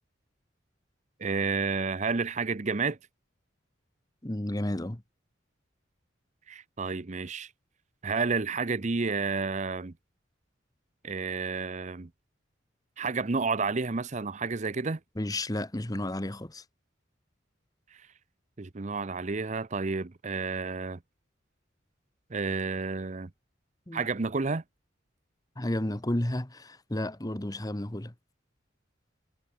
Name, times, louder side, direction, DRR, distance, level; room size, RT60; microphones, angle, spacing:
voice 1, 1.2-3.0 6.5-7.5 8.0-9.9 11.0-12.1 13.0-15.0 18.6-21.0 22.3-23.3 23.9-24.6, right 4 dB, 40° right, 0.7 m, -30 dB
voice 2, 4.2-5.0 15.2-16.6 23.9-24.1 25.6-28.1, left 1 dB, 20° left, 1.2 m, -32 dB
head